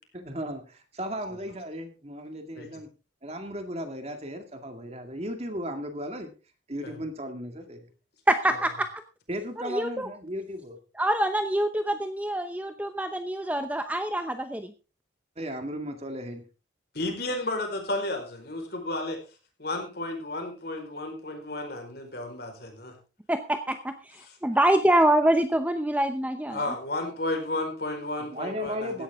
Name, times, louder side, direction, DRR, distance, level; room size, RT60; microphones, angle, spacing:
voice 1, 0.1-2.9 3.2-6.3 6.7-7.9 9.3-10.8 15.4-16.4 28.2-29.0, equal, 35° right, 6 dB, 2.1 m, -35 dB
voice 2, 8.3-8.9 9.6-10.1 11.0-14.7 23.3-26.6, right 1 dB, 10° right, 8 dB, 0.7 m, -25 dB
voice 3, 16.9-19.2 19.6-22.9 24.2-24.3 26.5-29.0, left 2 dB, 55° left, 4 dB, 4.6 m, -33 dB
16.5 x 12.0 x 3.6 m, 0.33 s
head